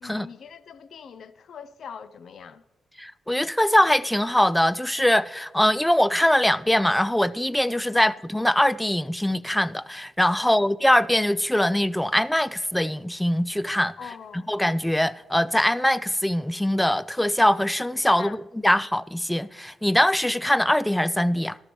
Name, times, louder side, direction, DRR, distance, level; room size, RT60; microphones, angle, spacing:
voice 1, 0.0-2.6 7.9-8.1 10.4-10.6 14.0-14.5 18.2-18.4, left 7 dB, 65° left, 0.6 m, -42 dB
voice 2, 3.0-13.9 14.3-21.6, left 1 dB, 5° left, 0.3 m, -22 dB
14.0 x 11.5 x 3.1 m
cardioid pair, 90°, 0 cm